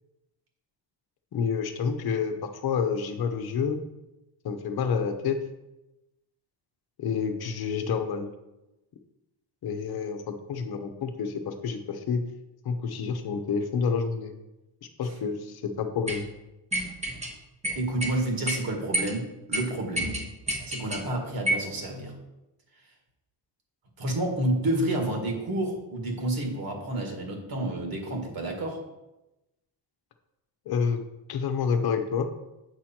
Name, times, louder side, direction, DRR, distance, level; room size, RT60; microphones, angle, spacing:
voice 1, 1.3-2.3 2.6-3.8 4.4-5.4 7.0-8.3 9.6-12.2 12.6-14.3 15.0-16.3 30.7-31.0 31.3-32.3, left 6 dB, 55° left, 7 dB, 1.0 m, -28 dB
sound 1, 16.1-16.2 16.7-17.3 17.6-18.1 18.5-18.6 18.9-19.2 19.5-19.6 20.0-21.0 21.5-21.7, right 1 dB, 15° right, 1.0 m, -29 dB
voice 2, 17.8-20.2 20.7-22.1 24.0-28.8, right 1 dB, 50° right, 1 dB, 2.1 m, -29 dB
8.1 x 6.3 x 4.4 m, 0.96 s
wide cardioid pair, 180°, 44 cm